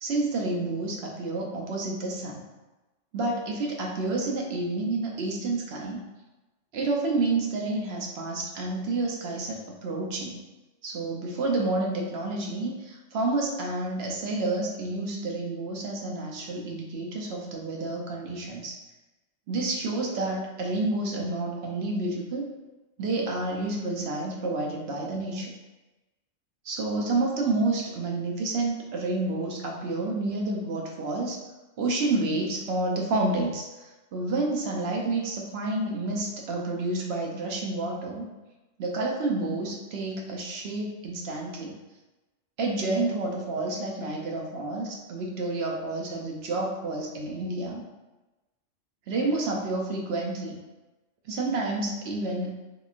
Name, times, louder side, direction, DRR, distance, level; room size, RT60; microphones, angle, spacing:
voice 1, 0.0-2.4 3.1-6.0 6.7-10.4 10.8-18.8 19.5-22.5 23.0-25.5 26.6-31.4 31.8-38.3 38.8-41.8 42.6-47.8 49.1-50.6 51.2-52.6, right 2 dB, 65° right, 0 dB, 0.7 m, -29 dB
3.7 x 2.3 x 2.4 m, 1.1 s
omnidirectional pair, 1.3 m